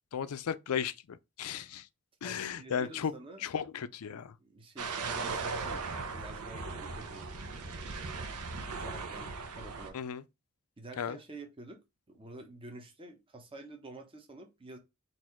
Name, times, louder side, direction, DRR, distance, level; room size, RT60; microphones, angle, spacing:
voice 1, 0.1-1.8 2.2-3.1 3.4-4.3 9.9-10.2 11.0-11.2, left 7 dB, 75° left, 0.4 m, -35 dB
voice 2, 2.2-3.5 4.4-8.4 8.8-10.0 10.8-11.8 12.1-14.8, right 2 dB, 25° right, 0.8 m, -49 dB
sound 1, 4.8-9.9, right 4 dB, 85° right, 0.8 m, -38 dB
4.2 x 2.6 x 4.3 m
head